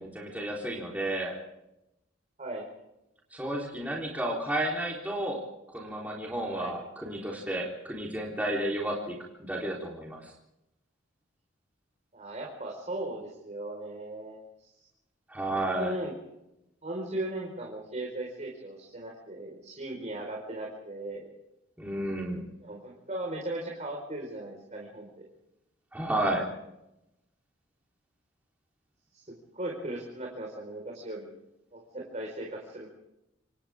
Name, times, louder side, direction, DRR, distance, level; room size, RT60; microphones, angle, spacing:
voice 1, 0.0-1.4 3.3-5.4 5.7-9.2 9.5-10.3 15.3-16.0 21.8-22.4 25.9-26.5, right 1 dB, 10° right, -3 dB, 3.8 m, -32 dB
voice 2, 12.1-14.7 15.5-16.1 16.8-21.3 22.6-25.2 29.1-31.3 31.7-32.9, right 1 dB, 35° right, -1 dB, 4.8 m, -38 dB
27.5 x 27.0 x 3.7 m, 0.88 s
head